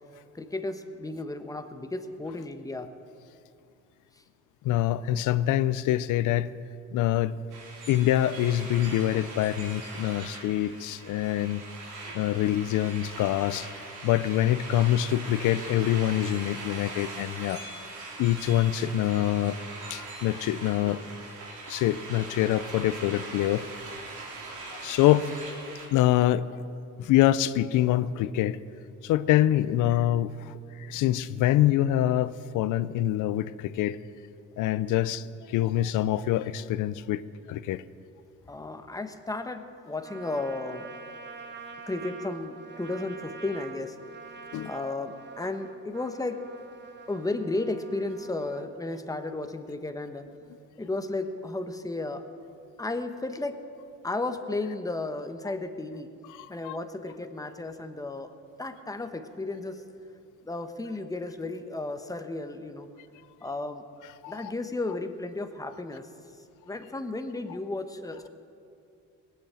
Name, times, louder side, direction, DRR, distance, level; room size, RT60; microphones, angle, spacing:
voice 1, 0.3-2.9 38.5-40.9 41.9-44.0 44.6-46.4 47.1-50.3 50.8-52.2 52.8-53.6 54.0-56.1 56.5-58.3 58.6-59.8 60.4-62.9 63.4-63.8 64.3-66.1 66.7-68.3, left 2 dB, 10° left, 7 dB, 1.1 m, -33 dB
voice 2, 4.6-6.5 6.9-7.3 7.9-11.6 12.1-13.7 14.0-17.6 18.2-19.6 19.9-21.0 21.7-23.6 24.8-25.3 25.7-26.4 27.0-28.6 29.0-34.0 34.6-37.2 37.5-37.8 44.5-44.7 56.4-56.8 64.2-64.5, left 13 dB, 85° left, 16 dB, 0.5 m, -25 dB
sound 1, 7.5-25.9, right 3 dB, 90° right, 3.0 m, -41 dB
Trumpet, 40.0-48.7, right 4 dB, 35° right, 1.2 m, -46 dB
18.5 x 8.4 x 7.5 m, 2.5 s
cardioid pair, 90°, 30 cm